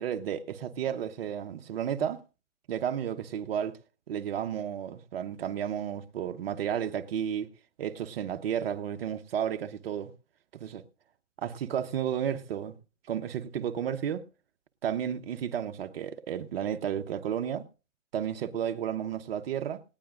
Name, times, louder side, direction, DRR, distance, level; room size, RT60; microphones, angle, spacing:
voice 1, 0.0-2.2 2.7-3.8 4.1-7.5 7.8-10.1 10.5-10.8 11.4-12.7 13.1-14.3 14.8-17.6 18.1-19.8, right 9 dB, 45° right, 1.1 m, -32 dB
19.0 x 18.0 x 2.5 m
hypercardioid pair, 145°, 39 cm